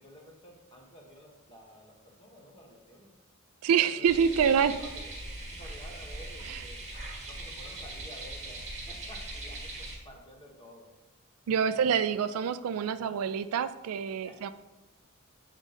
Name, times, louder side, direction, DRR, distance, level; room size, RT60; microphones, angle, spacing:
voice 1, 0.0-3.1 4.0-6.8 7.2-10.9 11.7-12.0 12.9-13.2 14.2-14.5, equal, 25° left, 0 dB, 1.2 m, -51 dB
voice 2, 3.6-4.7 6.5-6.6 11.5-14.5, right 7 dB, 85° right, 13 dB, 0.3 m, -26 dB
sound 1, 4.1-9.9, right 2 dB, 30° right, 1.5 m, -40 dB
8.1 x 3.7 x 3.8 m, 1.1 s
head